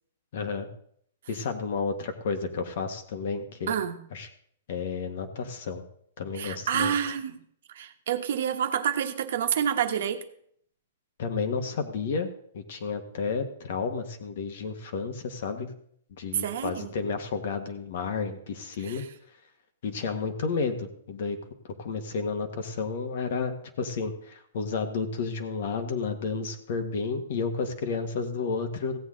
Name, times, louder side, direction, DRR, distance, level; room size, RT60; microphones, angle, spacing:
voice 1, 0.3-0.7 1.3-3.7 4.1-4.3 4.7-5.8 6.2-7.0 11.2-12.3 12.5-15.7 16.2-19.0 19.8-21.4 21.8-29.0, left 5 dB, 60° left, 7 dB, 1.6 m, -31 dB
voice 2, 3.7-4.0 6.3-7.4 7.7-10.2 16.3-16.9 18.8-19.1, right 8 dB, 65° right, 7 dB, 1.1 m, -28 dB
16.0 x 8.2 x 3.9 m, 0.64 s
hypercardioid pair, 155°, 0 cm